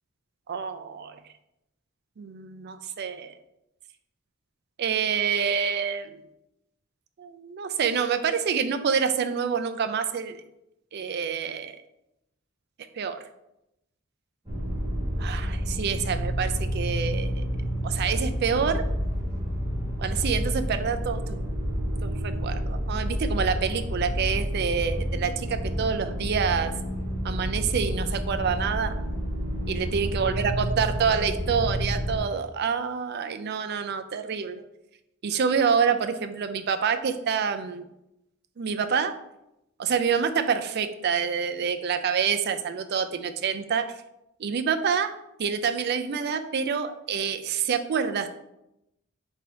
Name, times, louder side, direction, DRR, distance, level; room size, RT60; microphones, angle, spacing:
voice 1, 0.5-1.2 2.2-3.3 4.8-6.2 7.2-10.4 10.9-11.8 13.0-13.2 15.2-17.4 17.8-18.8 20.0-21.4 22.0-26.7 27.2-28.9 29.7-34.6 35.2-37.9 38.6-39.1 39.8-43.9 44.4-45.1 45.4-48.3, right 6 dB, 50° right, 9 dB, 0.4 m, -27 dB
sound 1, 14.4-32.2, equal, 20° right, 1.4 m, -29 dB
4.7 x 2.8 x 4.1 m, 0.87 s
head